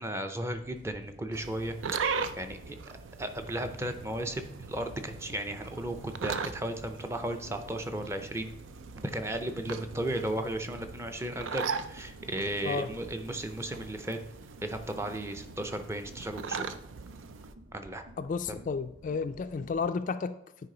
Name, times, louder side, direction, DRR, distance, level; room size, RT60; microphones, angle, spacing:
voice 1, 0.0-1.8 2.1-2.8 3.2-8.5 9.0-14.2 14.6-16.7 17.7-18.0, right 1 dB, 15° right, 7 dB, 0.5 m, -35 dB
sound 1, 0.5-19.9, equal, 55° right, 0.9 m, -54 dB
sound 2, 1.3-17.5, right 5 dB, 90° right, 0.5 m, -40 dB
voice 2, 18.2-20.4, left 5 dB, 40° left, 10 dB, 0.3 m, -32 dB
9.7 x 4.8 x 3.8 m, 0.85 s
head